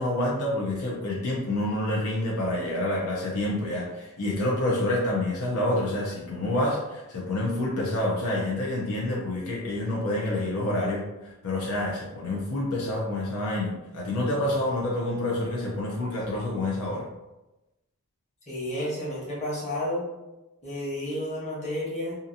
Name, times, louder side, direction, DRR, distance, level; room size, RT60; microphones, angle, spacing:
voice 1, 0.0-17.1, left 1 dB, 80° left, -4 dB, 0.6 m, -28 dB
voice 2, 18.5-20.0 20.6-22.2, left 1 dB, 30° left, -7 dB, 1.1 m, -31 dB
2.8 x 2.5 x 2.6 m, 0.99 s
head